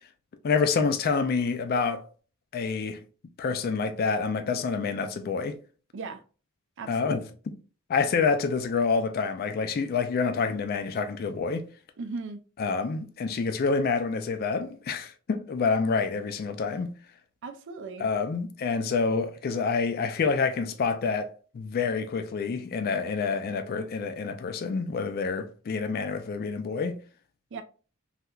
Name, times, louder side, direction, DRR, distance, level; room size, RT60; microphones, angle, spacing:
voice 1, 0.4-2.0 2.5-3.0 3.4-5.6 6.9-7.6 7.9-11.6 12.6-16.9 18.0-27.0, left 5 dB, 45° left, 0.3 m, -27 dB
voice 2, 6.8-7.2 12.0-12.4 17.4-18.1 27.5-27.6, right 4 dB, 55° right, 0.4 m, -37 dB
3.2 x 2.8 x 2.3 m
head